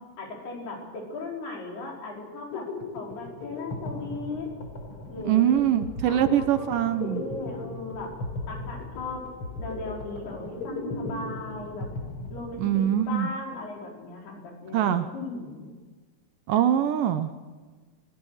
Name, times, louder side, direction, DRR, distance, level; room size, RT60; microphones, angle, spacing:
voice 1, 0.2-4.5 5.1-5.6 6.1-8.2 8.5-9.3 9.6-11.9 12.3-15.7, left 3 dB, 85° left, -1 dB, 6.8 m, -37 dB
sound 1, 2.2-13.0, left 3 dB, 35° left, 4.1 m, -37 dB
voice 2, 5.2-7.2 12.6-13.3 14.7-15.1 16.5-17.3, right 10 dB, 70° right, 10 dB, 2.3 m, -23 dB
29.5 x 17.5 x 6.5 m, 1.4 s
omnidirectional pair, 4.4 m